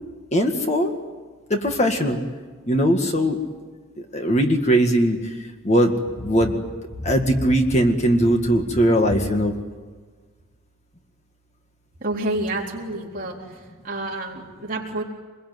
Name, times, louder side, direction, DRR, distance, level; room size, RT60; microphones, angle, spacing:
voice 1, 0.3-0.9 1.5-2.2 2.7-3.4 4.1-5.3 5.6-6.6 7.0-9.5, equal, 30° left, 4 dB, 1.9 m, -20 dB
voice 2, 12.0-13.4 13.8-15.0, right 2 dB, 40° right, -2 dB, 3.9 m, -28 dB
26.0 x 21.5 x 9.5 m, 1.4 s
head